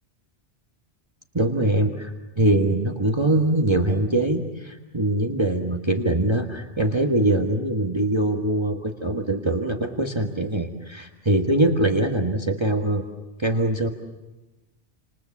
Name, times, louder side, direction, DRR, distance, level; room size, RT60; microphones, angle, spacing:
voice 1, 1.3-2.1 2.4-13.0 13.4-13.9, right 1 dB, 25° right, 2 dB, 1.5 m, -22 dB
29.5 x 27.0 x 7.3 m, 1.1 s
omnidirectional pair, 1.2 m